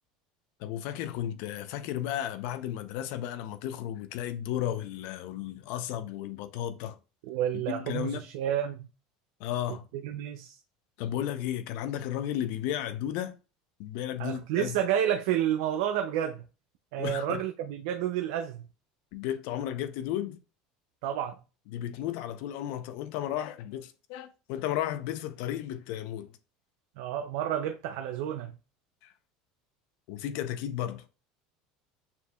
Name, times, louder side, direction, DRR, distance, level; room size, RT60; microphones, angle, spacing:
voice 1, 0.6-7.0 7.5-8.3 9.4-9.9 11.0-13.4 13.8-14.7 17.0-17.4 19.1-20.4 21.7-26.3 29.0-29.1 30.1-31.1, left 11 dB, 70° left, 0.6 m, -34 dB
voice 2, 7.3-8.9 9.9-10.6 14.2-16.4 16.9-18.6 21.0-21.4 27.0-28.5, right 10 dB, 75° right, 0.4 m, -30 dB
6.9 x 2.6 x 2.2 m
supercardioid pair, 110°, 3 cm